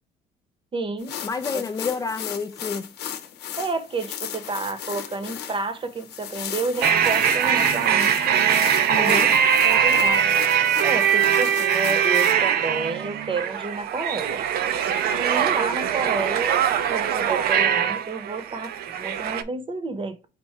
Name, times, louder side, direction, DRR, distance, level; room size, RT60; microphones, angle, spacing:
voice 1, 0.7-1.2 1.5-1.6 3.6-8.4 9.0-9.4 9.6-10.3 10.8-14.4 15.1-16.6 16.9-20.3, right 3 dB, 30° right, 0.9 m, -30 dB
sound 1, 1.0-12.3, left 9 dB, 85° left, 0.8 m, -36 dB
voice 2, 1.2-2.9 8.9-9.3, left 5 dB, 20° left, 0.4 m, -29 dB
sound 2, 6.8-19.4, right 8 dB, 65° right, 0.5 m, -21 dB
4.4 x 2.6 x 4.6 m
cardioid pair, 110°, 17 cm